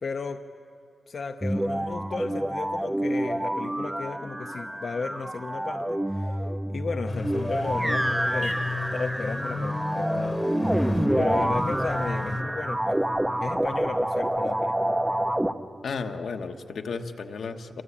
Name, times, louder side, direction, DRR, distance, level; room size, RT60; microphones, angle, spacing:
voice 1, 0.0-0.5 1.1-10.7 11.1-13.0 13.4-15.0, left 4 dB, 50° left, 6 dB, 0.7 m, -35 dB
sound 1, 1.4-15.5, right 1 dB, 5° right, 0.6 m, -27 dB
sound 2, 7.1-12.4, left 3 dB, 30° left, 1.1 m, -33 dB
voice 2, 15.8-17.8, left 4 dB, 75° left, 5 dB, 1.2 m, -33 dB
27.5 x 23.5 x 8.6 m, 2.6 s
wide cardioid pair, 170°, 0 cm